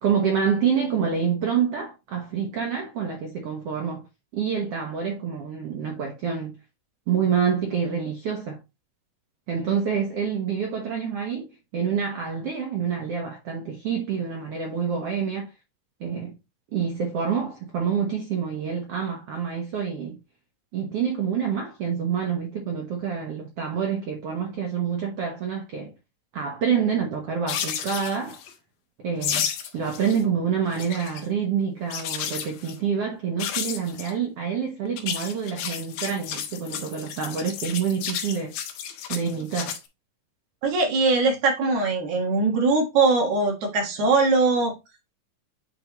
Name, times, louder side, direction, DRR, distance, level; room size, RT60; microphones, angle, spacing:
voice 1, 0.0-4.0 4.3-6.6 7.1-8.6 9.5-15.5 16.0-16.3 16.7-20.2 20.7-25.9 26.3-28.4 29.0-29.5 29.7-38.5 39.1-39.8, right 7 dB, 80° right, 1.3 m, -27 dB
sound 1, 27.5-28.5 29.2-30.2 30.5-31.2 31.9-32.8 33.4-34.1 34.9-39.8, left 9 dB, 85° left, 2.6 m, -32 dB
voice 2, 40.6-44.7, right 3 dB, 60° right, 2.7 m, -21 dB
9.0 x 3.5 x 3.0 m
omnidirectional pair, 4.1 m